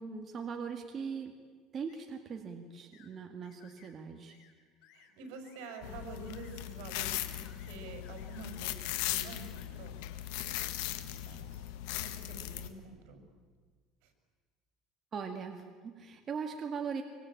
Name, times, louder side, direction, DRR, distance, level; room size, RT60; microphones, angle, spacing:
voice 1, 0.0-1.3 1.7-4.4 15.1-17.0, right 6 dB, 30° right, 4 dB, 2.0 m, -40 dB
sound 1, 1.9-2.1 2.9-3.1 3.4-3.9 4.3-4.5 4.8-5.1 5.4-5.8 6.2-6.6 7.1-7.7 8.0-8.5 8.7-9.7, left 9 dB, 70° left, 4.8 m, -62 dB
voice 2, 4.9-10.0 10.4-11.7 12.0-13.2 14.0-14.1, right 3 dB, 80° right, 5 dB, 6.3 m, -48 dB
sound 2, 5.8-12.7, left 13 dB, 90° left, 1.8 m, -38 dB
25.0 x 24.5 x 9.0 m, 1.5 s
cardioid pair, 140°, 0 cm